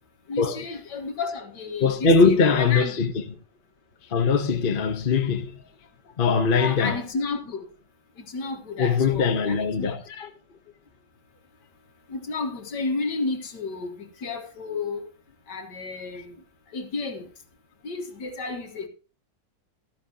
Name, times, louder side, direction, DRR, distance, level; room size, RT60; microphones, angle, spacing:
voice 1, 0.3-3.0 6.6-7.6 8.3-10.0 12.1-15.0 15.5-16.3 16.7-17.3 17.8-18.9, left 3 dB, 70° left, 2.1 m, -32 dB
voice 2, 1.8-3.1 4.1-5.5 6.2-7.0 8.8-10.3, left 5 dB, 35° left, 1.0 m, -21 dB
13.5 x 10.5 x 2.9 m
omnidirectional pair, 1.9 m